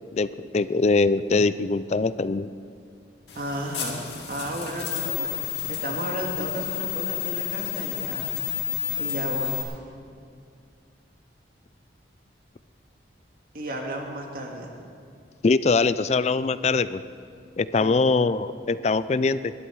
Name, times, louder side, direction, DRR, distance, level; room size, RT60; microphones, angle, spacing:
voice 1, 0.1-2.5 15.4-17.0 17.6-19.5, left 3 dB, 35° left, 15 dB, 0.3 m, -22 dB
sound 1, 3.3-9.6, left 10 dB, 70° left, 2.4 m, -30 dB
voice 2, 3.3-4.0 4.3-5.3 5.7-8.3 9.0-9.6 13.5-14.7 17.8-18.2, right 1 dB, 50° right, 1 dB, 2.0 m, -33 dB
21.0 x 11.5 x 4.7 m, 2.3 s
head